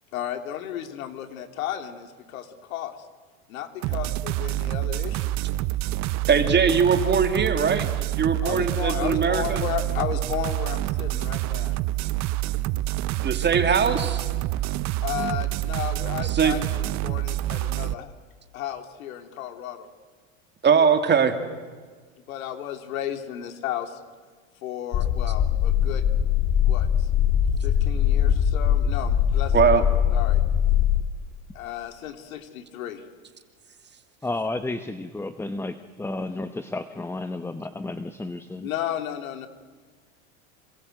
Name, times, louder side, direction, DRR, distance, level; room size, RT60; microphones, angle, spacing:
voice 1, 0.1-2.9 3.5-5.3 8.4-11.8 15.0-18.1 18.5-19.9 22.3-23.9 24.6-26.0 26.6-27.1 27.6-29.8 30.1-30.4 31.5-33.0 38.6-39.5, left 11 dB, 80° left, 7 dB, 3.1 m, -33 dB
sound 1, 3.8-17.9, right 16 dB, 45° right, 0.8 m, -27 dB
voice 2, 6.3-7.9 8.2-9.6 13.2-14.2 16.3-16.6 20.6-21.3 29.5-29.8, right 6 dB, 25° right, 7 dB, 2.7 m, -21 dB
sound 2, 24.9-31.0, left 9 dB, 45° left, 2.4 m, -21 dB
voice 3, 34.2-38.7, left 2 dB, 5° left, 11 dB, 1.0 m, -32 dB
27.5 x 26.0 x 7.9 m, 1.5 s
supercardioid pair, 110°, 41 cm